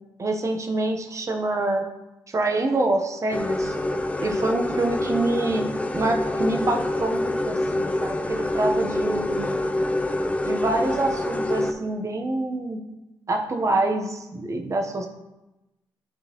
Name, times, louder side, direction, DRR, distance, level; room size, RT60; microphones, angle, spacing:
voice 1, 0.2-1.8 2.3-3.8 4.2-9.6 10.4-12.8 13.3-15.1, right 2 dB, 40° right, 3 dB, 0.9 m, -26 dB
sound 1, 3.3-11.7, left 1 dB, 15° left, 0.5 m, -26 dB
9.6 x 3.8 x 3.0 m, 0.98 s
cardioid pair, 70°, 9 cm